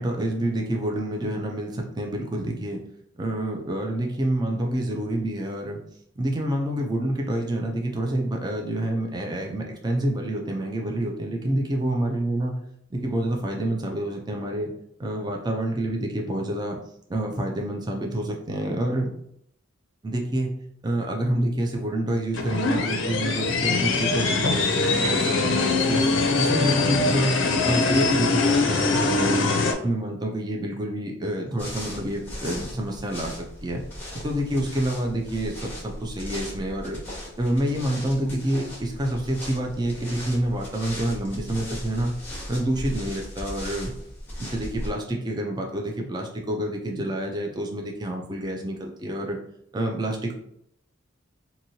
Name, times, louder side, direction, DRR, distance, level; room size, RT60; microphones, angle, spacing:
voice 1, 0.0-2.8 3.2-5.8 6.2-12.6 12.9-14.7 15.0-16.8 17.1-19.1 20.0-20.5 20.8-26.0 26.4-27.4 27.6-29.5 29.8-33.8 34.2-37.0 37.4-42.1 42.5-43.9 44.4-49.4 49.7-50.3, right 1 dB, 20° right, 1 dB, 0.4 m, -27 dB
sound 1, 22.3-29.7, left 3 dB, 70° left, 0.4 m, -22 dB
sound 2, 31.6-44.9, equal, 10° left, 1.0 m, -37 dB
2.9 x 2.7 x 2.7 m, 0.72 s
head